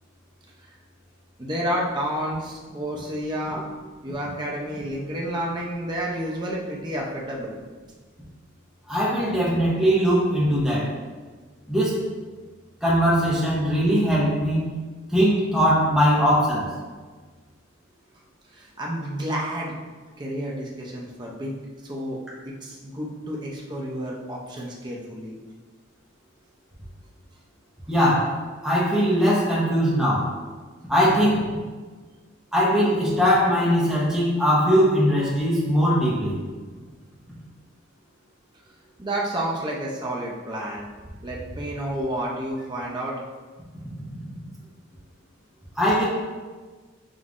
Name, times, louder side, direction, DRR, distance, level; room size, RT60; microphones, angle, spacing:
voice 1, 1.4-3.7 4.0-7.6 18.5-19.7 20.2-25.4 39.0-40.9 41.2-43.2, right 1 dB, 20° right, -3 dB, 0.5 m, -30 dB
voice 2, 8.9-10.9 11.7-12.0 12.8-14.7 15.1-16.7 27.9-28.4 28.6-30.3 30.8-31.5 32.5-36.4 45.8-46.0, equal, 5° right, -8 dB, 0.9 m, -20 dB
5.2 x 3.1 x 2.5 m, 1.4 s
head